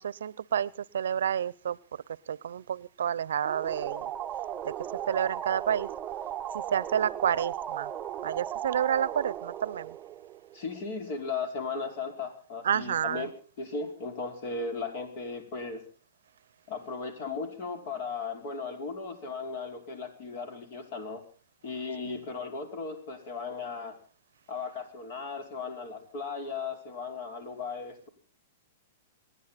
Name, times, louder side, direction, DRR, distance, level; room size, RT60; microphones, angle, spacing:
voice 1, 0.0-4.1 4.6-4.7 5.1-5.9 6.5-7.9 8.2-10.0 12.6-13.3 22.1-22.2, right 9 dB, 75° right, 23 dB, 0.7 m, -30 dB
sound 1, 3.4-10.8, right 11 dB, 25° right, 0.7 m, -37 dB
voice 2, 10.5-13.3 13.6-15.8 16.7-21.2 21.6-24.0 24.5-28.1, left 4 dB, 55° left, 6 dB, 5.0 m, -36 dB
28.5 x 10.5 x 4.1 m, 0.39 s
hypercardioid pair, 115°, 0 cm